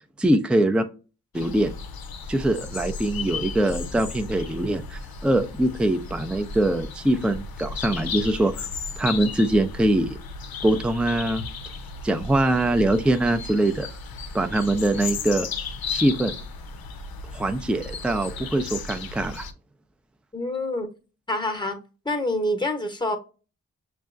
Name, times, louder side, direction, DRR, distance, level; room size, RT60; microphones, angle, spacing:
voice 1, 0.2-0.8 1.3-1.7 2.3-8.7 9.0-10.2 10.6-11.4 12.0-13.9 14.3-15.5 15.9-16.3 17.3-19.5, right 1 dB, 5° right, 0.5 m, -23 dB
sound 1, 1.3-19.5, left 4 dB, 80° left, 0.6 m, -35 dB
voice 2, 20.3-20.9 21.3-21.8 22.0-23.2, left 1 dB, 10° left, 0.9 m, -26 dB
6.1 x 2.3 x 2.5 m
cardioid pair, 40°, 35 cm